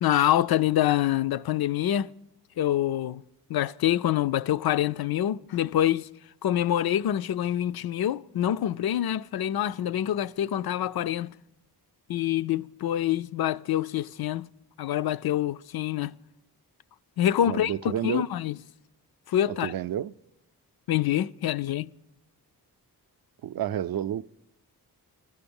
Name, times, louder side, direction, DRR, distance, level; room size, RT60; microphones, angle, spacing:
voice 1, 0.0-2.1 2.6-3.2 3.5-6.1 6.4-11.3 12.1-14.5 14.8-16.1 17.2-18.5 19.3-19.7 20.9-21.9, left 12 dB, 70° left, 0.5 m, -26 dB
voice 2, 17.4-18.3 19.5-20.1 23.4-24.3, right 10 dB, 65° right, 0.5 m, -30 dB
15.0 x 13.0 x 7.0 m
cardioid pair, 75°, 39 cm